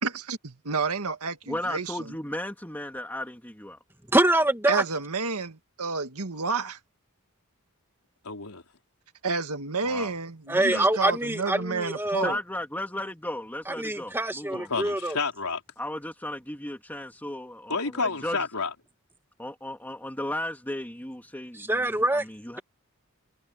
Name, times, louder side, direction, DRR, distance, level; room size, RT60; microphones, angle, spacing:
voice 1, 0.0-2.1 4.7-6.8 9.2-12.4, right 4 dB, 85° right, 1.9 m, -30 dB
voice 2, 1.5-3.8 9.8-10.1 10.7-10.9 12.2-14.7 15.8-18.4 19.4-21.7 22.1-22.6, left 1 dB, 10° left, 2.8 m, -35 dB
voice 3, 4.1-4.8 10.5-12.4 13.7-15.2 21.5-22.3, right 1 dB, 10° right, 2.1 m, -25 dB
voice 4, 8.2-8.6 14.5-15.6 17.7-18.7, left 4 dB, 85° left, 3.9 m, -30 dB
head